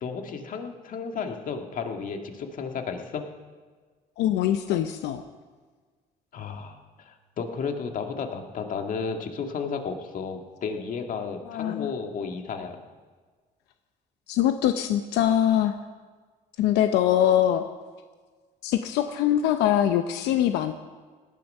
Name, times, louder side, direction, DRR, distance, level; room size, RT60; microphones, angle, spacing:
voice 1, 0.0-3.3 6.3-12.8, left 5 dB, 55° left, 4 dB, 1.8 m, -33 dB
voice 2, 4.2-5.2 11.5-11.9 14.3-15.7 16.6-17.6 18.6-20.7, left 11 dB, 90° left, 8 dB, 0.7 m, -23 dB
17.5 x 11.5 x 5.4 m, 1.4 s
cardioid pair, 110°, 17 cm